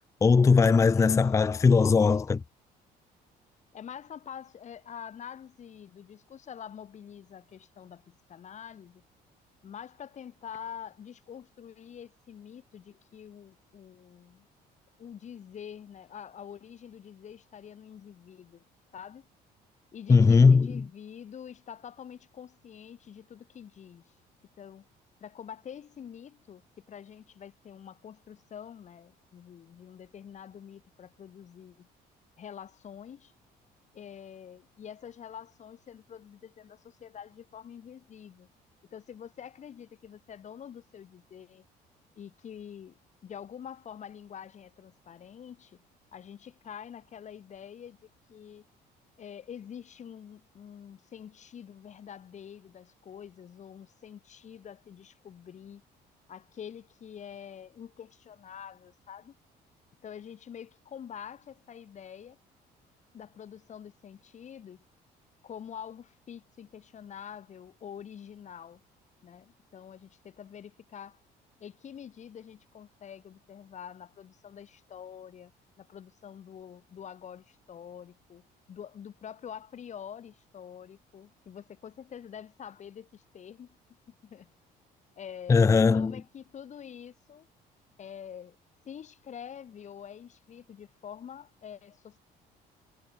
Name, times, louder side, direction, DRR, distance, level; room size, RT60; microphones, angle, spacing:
voice 1, 0.2-2.4 20.1-20.8 85.5-86.1, left 5 dB, 20° left, 0.4 m, -20 dB
voice 2, 0.9-1.7 3.7-9.0 9.6-14.5 15.0-18.7 18.9-19.3 19.9-24.1 24.6-24.9 25.2-31.9 32.4-33.3 33.9-38.5 38.9-41.6 42.2-43.0 43.2-45.8 46.1-48.6 49.2-55.8 56.3-59.3 60.0-62.4 63.1-64.8 65.4-68.8 69.2-71.2 71.6-83.8 84.2-84.5 85.2-87.5 88.0-88.6 88.9-92.2, left 8 dB, 45° left, 1.9 m, -46 dB
cardioid pair, 110°, 17 cm